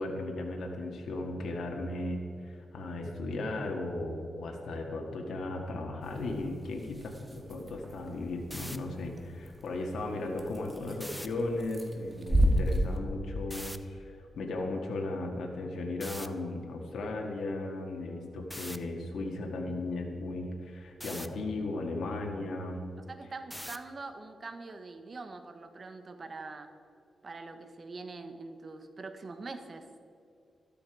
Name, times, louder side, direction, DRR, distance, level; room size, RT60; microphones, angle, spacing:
voice 1, 0.0-22.8, left 2 dB, 80° left, 0 dB, 1.9 m, -36 dB
sound 1, 6.0-13.0, equal, 20° right, 1.9 m, -33 dB
sound 2, 8.4-8.8 10.9-11.3 13.5-13.8 16.0-16.3 18.5-18.8 21.0-21.3 23.5-23.9, equal, ahead, 0.8 m, -41 dB
voice 2, 23.1-26.7 27.2-29.9, right 3 dB, 45° right, 8 dB, 1.4 m, -43 dB
13.5 x 13.0 x 4.9 m, 2.6 s
cardioid pair, 90°, 0 cm